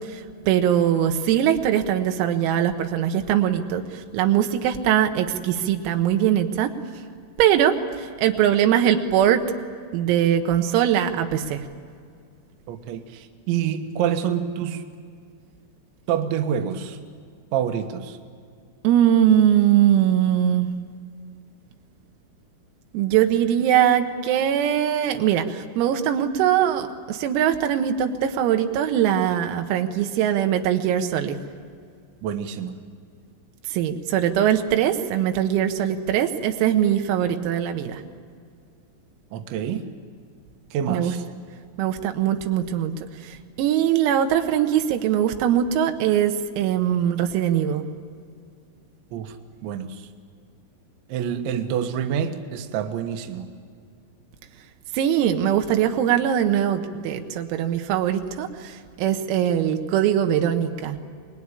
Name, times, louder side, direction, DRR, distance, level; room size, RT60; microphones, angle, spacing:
voice 1, 0.5-6.7 7.4-9.4 9.9-11.6 18.8-20.7 22.9-31.4 33.7-38.0 40.9-41.1 41.8-42.9 43.2-47.8 54.9-61.0, right 10 dB, 85° right, 6 dB, 4.1 m, -21 dB
voice 2, 12.7-14.8 16.1-17.0 17.5-18.2 32.2-32.8 39.3-39.8 40.7-41.2 49.1-49.3 49.6-50.1 51.1-53.5, right 8 dB, 70° right, 6 dB, 3.4 m, -27 dB
25.5 x 21.0 x 9.9 m, 2.1 s
omnidirectional pair, 6.0 m